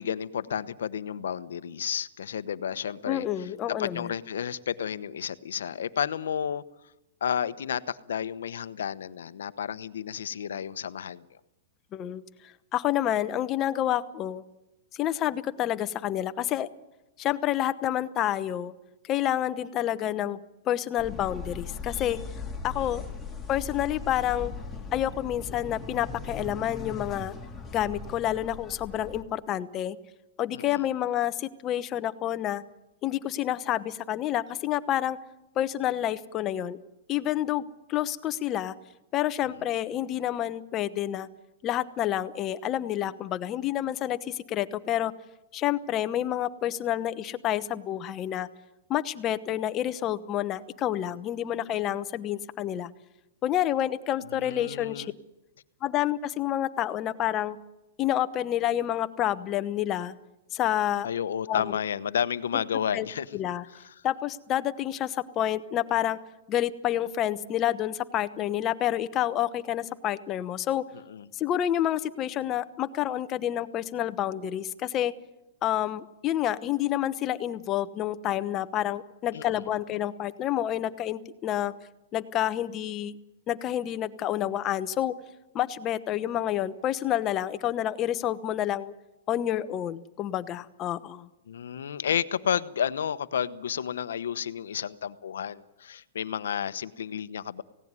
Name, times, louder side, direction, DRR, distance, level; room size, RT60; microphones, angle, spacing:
voice 1, 0.0-3.2 3.7-6.6 7.2-11.2 22.8-23.1 30.5-30.8 54.3-55.1 61.0-63.3 63.7-63.8 71.1-71.3 79.3-79.4 91.5-97.6, left 8 dB, 85° left, 15 dB, 0.9 m, -31 dB
voice 2, 3.1-4.1 11.9-14.4 14.9-16.7 17.2-18.7 19.0-20.4 20.6-22.2 22.6-23.0 23.5-24.5 24.9-27.3 27.7-30.0 30.4-32.6 33.0-35.2 35.6-36.8 37.1-38.7 39.1-41.3 41.6-45.1 45.5-48.5 48.9-52.9 53.4-55.1 55.8-57.6 58.0-60.1 60.5-61.1 61.5-61.8 62.5-62.6 62.9-63.1 63.3-63.6 64.0-66.2 66.5-70.8 71.3-75.1 75.6-81.7 82.1-83.1 83.5-85.1 85.5-88.9 89.3-91.3, left 12 dB, 30° left, 12 dB, 1.0 m, -29 dB
sound 1, 21.0-29.2, left 4 dB, 5° left, 3.1 m, -39 dB
18.0 x 17.0 x 9.7 m, 0.94 s
hypercardioid pair, 145°, 0 cm